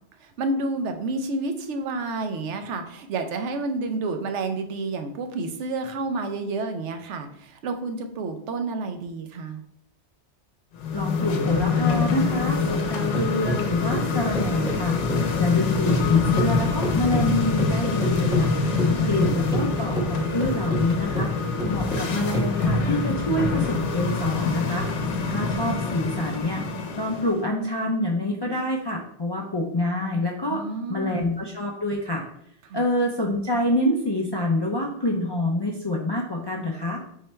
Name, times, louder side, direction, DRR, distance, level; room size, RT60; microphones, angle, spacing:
voice 1, 0.2-9.6 18.6-19.2 30.5-31.2 32.6-32.8, right 3 dB, 80° right, 7 dB, 0.9 m, -30 dB
sound 1, 10.8-27.4, left 4 dB, 90° left, 1.0 m, -25 dB
voice 2, 10.9-15.0 15.4-18.5 19.0-21.3 21.7-24.9 25.2-26.6 27.0-30.6 30.9-32.2 32.7-37.0, left 1 dB, 40° left, -1 dB, 0.3 m, -26 dB
sound 2, 12.7-16.1 16.4-23.0, equal, 5° right, 1.3 m, -29 dB
3.8 x 3.2 x 4.2 m, 0.70 s
omnidirectional pair, 1.2 m